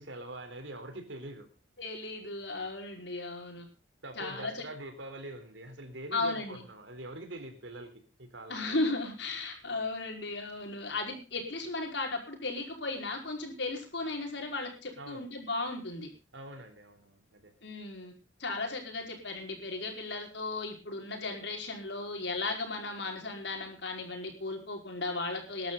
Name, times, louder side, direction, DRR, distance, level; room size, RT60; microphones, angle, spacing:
voice 1, 0.0-1.5 4.0-8.7 15.0-15.3 16.3-17.5, right 1 dB, 90° right, 7 dB, 3.9 m, -44 dB
voice 2, 1.8-3.7 4.1-4.6 6.1-6.6 8.5-16.1 17.6-18.1 18.4-25.7, left 3 dB, 70° left, 3 dB, 5.1 m, -36 dB
20.5 x 12.0 x 4.0 m, 0.32 s
head